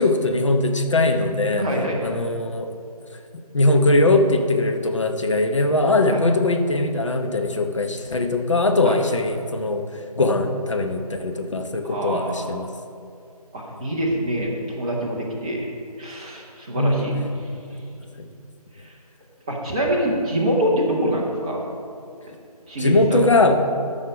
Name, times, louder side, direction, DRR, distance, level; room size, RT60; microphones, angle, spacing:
voice 1, 0.0-1.6 2.0-2.7 3.5-9.8 10.2-12.7 16.7-17.1 18.2-18.3 22.8-23.6, left 2 dB, 50° left, 5 dB, 0.8 m, -20 dB
voice 2, 1.6-2.0 6.1-6.2 8.8-9.0 11.8-12.5 13.5-15.7 16.0-17.5 18.8-18.9 19.5-21.6 22.7-23.2, equal, 10° right, -4 dB, 0.7 m, -25 dB
13.5 x 5.6 x 5.1 m, 2.4 s
figure-of-eight pair, 155°, 20 cm